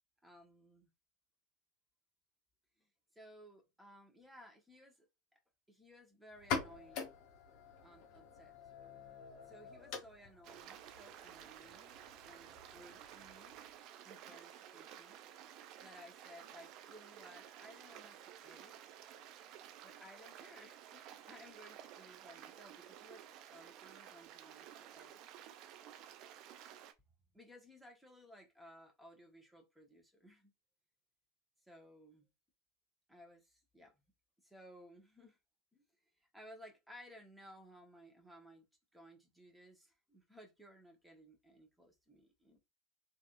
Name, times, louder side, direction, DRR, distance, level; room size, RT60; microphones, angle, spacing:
voice 1, 0.2-0.9 2.8-2.9 3.1-5.0 5.7-7.1 7.8-8.5 9.5-11.9 12.2-13.6 14.0-15.2 15.8-18.7 19.8-24.7 24.9-25.2 27.3-30.5 31.6-32.3 33.1-34.0 34.4-35.4 35.7-35.8 36.2-38.6 38.9-42.6, equal, 5° right, 1.4 m, -59 dB
sound 1, 6.3-13.8, left 6 dB, 50° left, 1.1 m, -46 dB
Stream, 10.4-26.9, right 10 dB, 50° right, 0.5 m, -54 dB
3.3 x 2.8 x 2.6 m
figure-of-eight pair, 85°, 0 cm